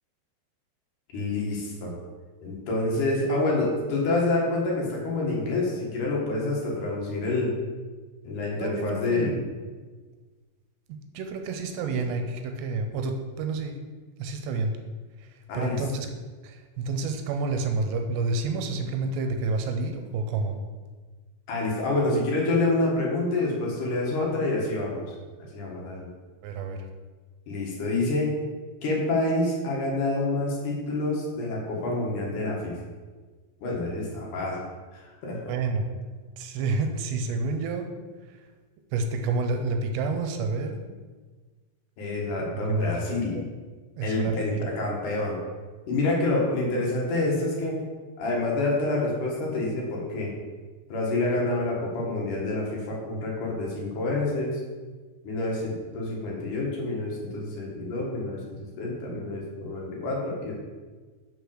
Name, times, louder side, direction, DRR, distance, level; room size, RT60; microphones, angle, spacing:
voice 1, 1.1-1.9 2.4-7.5 8.2-9.4 15.5-15.8 21.5-25.0 25.5-26.1 27.5-28.3 28.8-32.8 33.6-34.6 34.9-35.5 42.0-43.4 44.0-45.4 45.9-47.8 48.2-50.3 50.9-54.6 55.2-60.5, left 2 dB, 60° left, -3 dB, 2.5 m, -27 dB
voice 2, 8.6-9.4 10.9-13.8 14.2-14.7 15.2-16.1 16.4-20.6 26.4-26.9 35.5-35.9 36.4-37.9 38.3-38.5 38.9-40.8 42.4-42.9 43.4-43.5 44.0-44.7, right 3 dB, 80° right, 5 dB, 2.8 m, -29 dB
6.3 x 5.2 x 6.3 m, 1.4 s
omnidirectional pair, 5.0 m